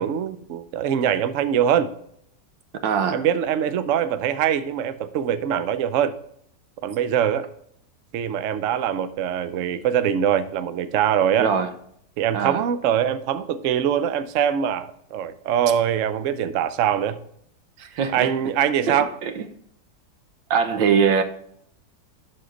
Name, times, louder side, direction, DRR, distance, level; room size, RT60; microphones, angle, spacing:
voice 1, 0.0-1.9 3.1-6.2 6.8-7.5 8.1-11.5 12.2-17.2 18.1-19.1, right 9 dB, 70° right, 11 dB, 0.7 m, -23 dB
voice 2, 2.8-3.2 11.4-11.7 12.3-12.6 17.8-18.3 18.9-19.0 19.2-19.4 20.5-21.2, right 6 dB, 85° right, 8 dB, 1.6 m, -22 dB
11.5 x 4.3 x 3.9 m, 0.68 s
omnidirectional pair, 2.0 m